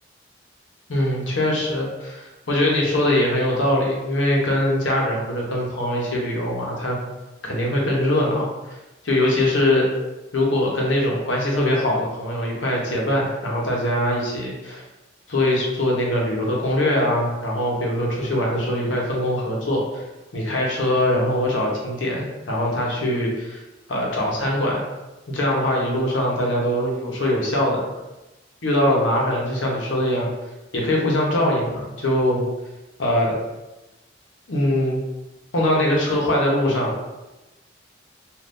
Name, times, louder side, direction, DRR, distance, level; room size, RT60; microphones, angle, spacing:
voice 1, 0.9-7.0 7.4-8.5 9.0-9.9 10.3-14.8 15.3-20.0 20.3-23.6 23.9-24.8 25.3-27.8 28.6-30.3 30.7-32.4 33.0-33.4 34.5-35.0 35.5-36.9, left 1 dB, 85° left, -2 dB, 0.8 m, -22 dB
2.5 x 2.4 x 3.4 m, 1.1 s
head